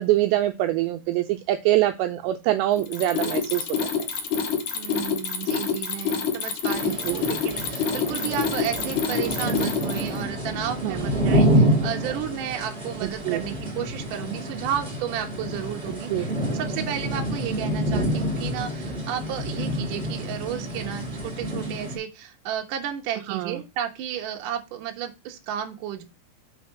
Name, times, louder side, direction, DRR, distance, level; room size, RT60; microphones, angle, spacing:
voice 1, 0.0-3.8 7.0-7.3 10.8-11.1 13.0-13.4 16.1-16.3 23.3-23.6, right 14 dB, 80° right, 7 dB, 2.6 m, -24 dB
Mechanisms, 2.8-10.2, left 6 dB, 65° left, 2.0 m, -27 dB
voice 2, 4.7-26.0, right 9 dB, 65° right, 3 dB, 2.1 m, -33 dB
sound 1, 6.7-22.0, right 1 dB, 15° right, 1.6 m, -27 dB
6.5 x 4.2 x 5.8 m, 0.25 s
omnidirectional pair, 5.4 m